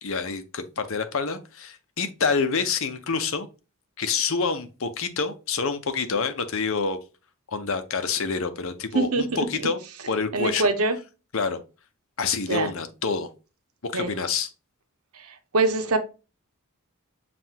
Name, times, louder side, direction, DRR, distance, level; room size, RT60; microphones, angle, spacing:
voice 1, 0.0-3.5 4.0-7.0 7.5-9.8 10.1-10.7 11.3-11.6 12.2-13.3 13.8-14.5, left 5 dB, 65° left, 9 dB, 0.7 m, -27 dB
voice 2, 8.9-9.5 10.3-11.0 12.4-12.7 13.9-14.1 15.1-15.3 15.5-16.0, right 3 dB, 75° right, 8 dB, 0.8 m, -23 dB
7.4 x 2.5 x 2.9 m, 0.31 s
head